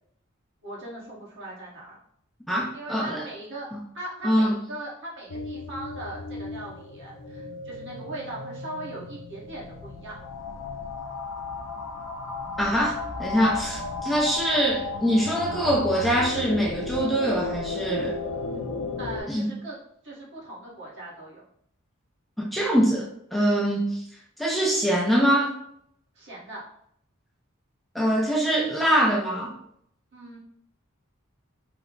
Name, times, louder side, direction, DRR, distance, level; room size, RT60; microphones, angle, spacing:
voice 1, 0.6-2.0 2.7-3.7 3.9-10.2 19.0-19.8 20.0-21.4 23.6-23.7 26.1-26.6 30.1-30.4, right 2 dB, 60° right, -5 dB, 1.2 m, -39 dB
voice 2, 2.5-3.2 3.7-3.8 4.2-4.6 12.6-18.2 19.3-19.5 22.4-24.0 24.4-25.6 27.9-29.6, equal, ahead, -3 dB, 0.4 m, -24 dB
sound 1, 5.3-19.2, left 3 dB, 65° left, 0.5 m, -34 dB
3.3 x 2.0 x 3.7 m, 0.69 s
head